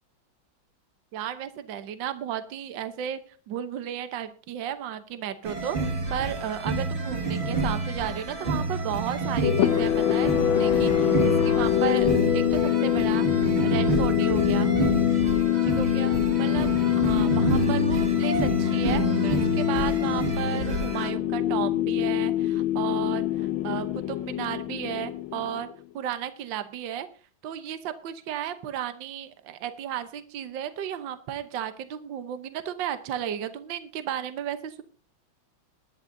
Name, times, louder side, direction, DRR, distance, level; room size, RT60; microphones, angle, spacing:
voice 1, 1.1-3.2 3.5-14.7 15.6-16.1 16.4-25.7 25.9-27.1 27.4-34.8, right 9 dB, 65° right, 10 dB, 1.6 m, -34 dB
sound 1, 5.4-21.1, right 3 dB, 30° right, 2.0 m, -29 dB
sound 2, 9.4-25.7, left 12 dB, 80° left, 1.5 m, -24 dB
21.5 x 11.0 x 2.7 m, 0.37 s
omnidirectional pair, 2.2 m